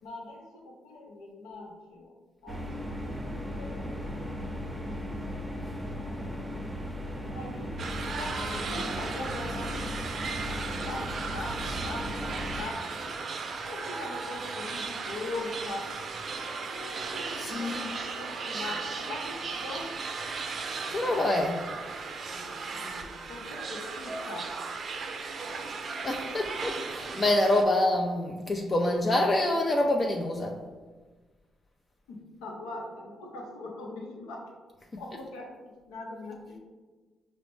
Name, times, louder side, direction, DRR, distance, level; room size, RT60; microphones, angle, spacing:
voice 1, 0.0-2.1 2.4-6.6 7.2-9.8 10.4-11.6 11.8-13.1 13.7-15.8 16.7-19.9 22.3-24.5 32.1-34.4 35.0-36.6, left 2 dB, 90° left, -1 dB, 0.7 m, -42 dB
sound 1, 2.5-12.6, equal, 10° right, 0.7 m, -36 dB
sound 2, 7.8-27.6, right 4 dB, 60° right, 0.4 m, -36 dB
voice 2, 17.4-17.8 20.9-21.6 26.0-30.6, left 1 dB, 40° left, 1 dB, 0.4 m, -26 dB
4.9 x 2.0 x 3.1 m, 1.3 s
supercardioid pair, 55°, 0 cm